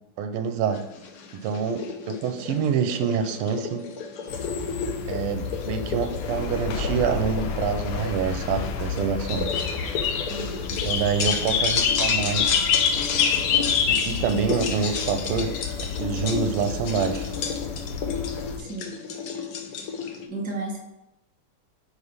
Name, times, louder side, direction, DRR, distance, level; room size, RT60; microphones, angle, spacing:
voice 1, 0.2-0.9 1.3-3.9 5.1-9.5 10.7-12.6 13.9-15.6 15.8-17.3, right 6 dB, 85° right, 8 dB, 1.5 m, -26 dB
sound 1, 0.7-20.3, left 5 dB, 70° left, 0.9 m, -33 dB
sound 2, 4.3-18.6, left 7 dB, 85° left, 1.6 m, -28 dB
voice 2, 10.3-10.8 18.6-19.1 20.3-20.8, right 2 dB, 5° right, -1 dB, 0.9 m, -34 dB
5.0 x 4.3 x 5.4 m, 0.90 s
omnidirectional pair, 2.4 m